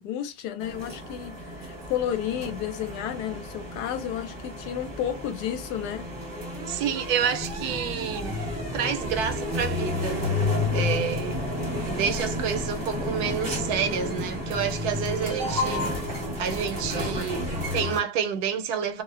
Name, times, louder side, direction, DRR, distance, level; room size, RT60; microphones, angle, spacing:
voice 1, 0.0-6.1, left 10 dB, 90° left, 1.1 m, -32 dB
sound 1, 0.6-18.0, left 2 dB, 20° right, 0.6 m, -31 dB
voice 2, 6.7-8.4 8.7-10.2 10.7-11.4 11.8-15.9 16.4-19.0, right 7 dB, 80° right, 1.1 m, -29 dB
2.7 x 2.1 x 2.4 m
omnidirectional pair, 1.7 m